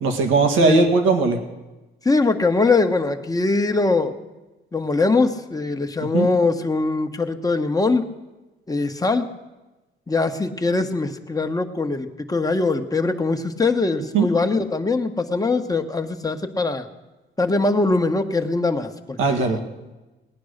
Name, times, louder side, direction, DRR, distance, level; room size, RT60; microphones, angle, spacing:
voice 1, 0.0-1.4 6.0-6.3 14.1-14.3 19.2-19.6, right 4 dB, 90° right, 5 dB, 1.8 m, -18 dB
voice 2, 0.6-0.9 2.0-4.1 4.7-8.1 8.7-9.3 10.1-16.9 17.4-19.5, left 3 dB, 20° left, 6 dB, 1.1 m, -22 dB
19.0 x 9.4 x 6.5 m, 1.1 s
cardioid pair, 90°, 20 cm